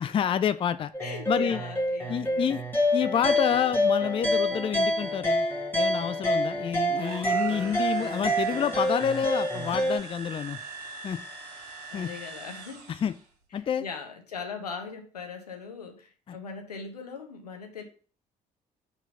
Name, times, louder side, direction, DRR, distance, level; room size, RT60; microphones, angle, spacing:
voice 1, 0.0-0.9 1.3-1.6 2.1-2.6 2.9-5.5 5.7-10.6 11.0-11.2 11.9-12.1 12.9-13.1 13.5-13.8 16.3-16.4, left 8 dB, 25° left, 13 dB, 0.4 m, -28 dB
sound 1, 0.9-10.0, equal, 10° left, 1.9 m, -27 dB
voice 2, 1.0-2.6 7.6-7.8 11.9-12.9 13.8-17.8, left 5 dB, 80° left, 5 dB, 0.9 m, -40 dB
sound 2, 6.9-13.3, right 4 dB, 75° right, 1.2 m, -42 dB
4.4 x 4.0 x 5.4 m, 0.40 s
figure-of-eight pair, 50°, 20 cm